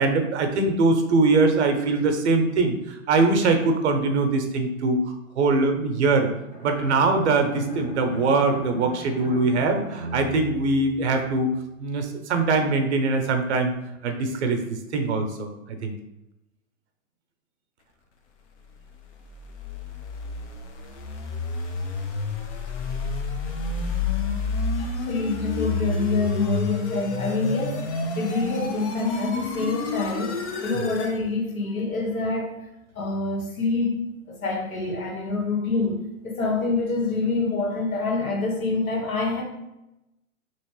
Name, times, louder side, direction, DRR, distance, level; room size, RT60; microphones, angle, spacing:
voice 1, 0.0-6.3 6.6-11.5 11.8-13.7 14.0-15.9 30.7-30.9, right 3 dB, 55° right, 5 dB, 0.7 m, -22 dB
Bowed string instrument, 6.5-11.5, right 2 dB, 5° left, 0.6 m, -39 dB
sound 1, 19.0-31.2, left 3 dB, 55° left, 0.7 m, -29 dB
voice 2, 24.8-32.6 32.9-39.4, left 3 dB, 85° left, 0 dB, 1.2 m, -26 dB
3.1 x 3.0 x 3.0 m, 0.92 s
hypercardioid pair, 130°, 41 cm